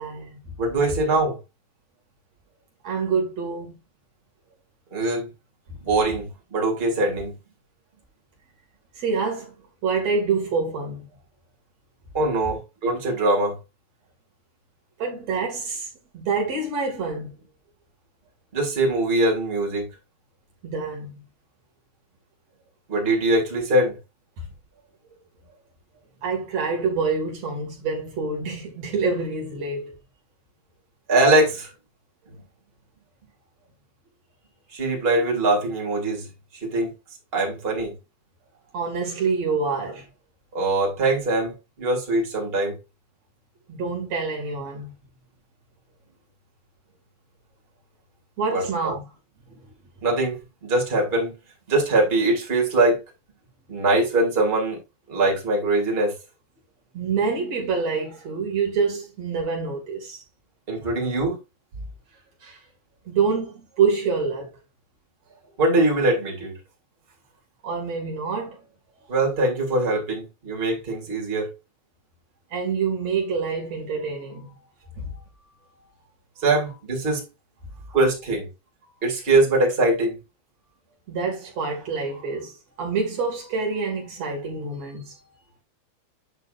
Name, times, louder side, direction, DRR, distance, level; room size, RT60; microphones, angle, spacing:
voice 1, 0.0-0.5 2.8-3.7 8.9-9.5 9.8-11.1 15.0-15.9 16.1-17.4 20.6-21.2 24.4-24.5 26.2-29.9 38.7-40.0 43.7-44.9 48.4-49.0 49.5-49.6 56.9-60.2 62.4-62.6 63.1-64.5 67.6-68.6 72.5-74.6 75.0-75.2 77.9-78.0 81.1-82.5 82.8-85.2, right 4 dB, 50° right, 2.1 m, -26 dB
voice 2, 0.6-1.4 4.9-5.3 5.8-7.3 12.1-13.6 18.5-19.9 22.9-24.0 31.1-31.7 34.7-36.3 36.5-36.9 37.3-37.9 40.5-42.8 48.5-48.9 50.0-51.3 51.7-53.0 53.7-54.8 55.1-56.2 60.7-61.4 65.6-66.6 69.1-71.5 76.4-77.2 77.9-78.5 79.0-80.2, right 2 dB, 35° right, 0.9 m, -22 dB
8.9 x 6.1 x 2.5 m
omnidirectional pair, 5.9 m